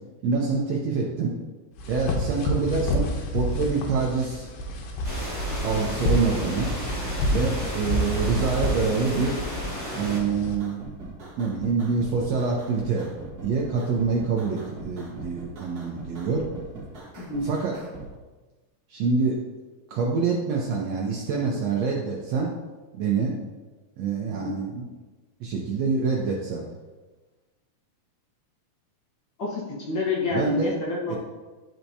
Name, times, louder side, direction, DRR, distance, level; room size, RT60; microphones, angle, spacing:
voice 1, 0.2-1.3 1.9-3.1 3.3-4.5 5.6-6.7 7.3-9.4 9.9-10.8 11.4-13.1 13.4-16.5 17.4-17.8 18.9-19.4 19.9-22.6 22.9-23.4 24.0-24.9 25.4-26.6 30.3-30.7 31.1-31.2, right 4 dB, 75° right, -2 dB, 1.6 m, -26 dB
sound 1, 1.8-10.6, left 1 dB, 90° left, 2.5 m, -29 dB
sound 2, 5.0-10.2, equal, 25° left, 2.0 m, -34 dB
sound 3, 5.9-18.1, right 2 dB, 50° right, 1.1 m, -41 dB
voice 2, 17.2-17.5 24.3-24.6 29.4-31.2, left 2 dB, 70° left, -4 dB, 1.1 m, -28 dB
11.0 x 4.5 x 2.7 m, 1.2 s
omnidirectional pair, 3.8 m